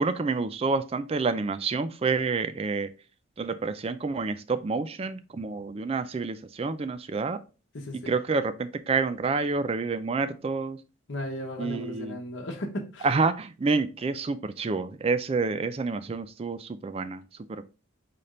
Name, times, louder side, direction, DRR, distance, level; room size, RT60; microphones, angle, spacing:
voice 1, 0.0-2.9 3.4-7.4 8.1-10.8 11.6-12.2 13.0-17.2 17.5-17.6, right 4 dB, 30° right, 12 dB, 0.3 m, -28 dB
voice 2, 7.7-8.1 11.1-13.1, left 1 dB, 60° left, 2 dB, 1.0 m, -35 dB
4.2 x 3.4 x 3.8 m, 0.33 s
head